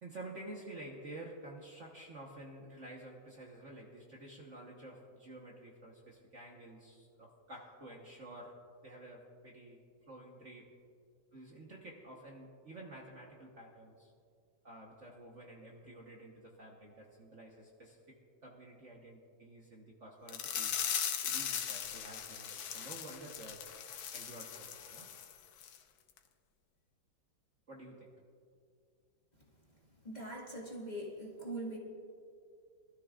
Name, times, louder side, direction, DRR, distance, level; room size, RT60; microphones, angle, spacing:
voice 1, 0.0-10.7 11.3-14.1 14.6-20.8 21.2-23.7 24.1-25.1 27.7-28.2, right 1 dB, 45° right, -2 dB, 1.4 m, -51 dB
sound 1, 20.3-25.3 25.6-25.8 26.2-26.3, left 8 dB, 85° left, 1.6 m, -39 dB
voice 2, 30.0-31.8, right 1 dB, 20° left, -4 dB, 1.7 m, -42 dB
23.0 x 13.0 x 2.5 m, 2.3 s
omnidirectional pair, 2.1 m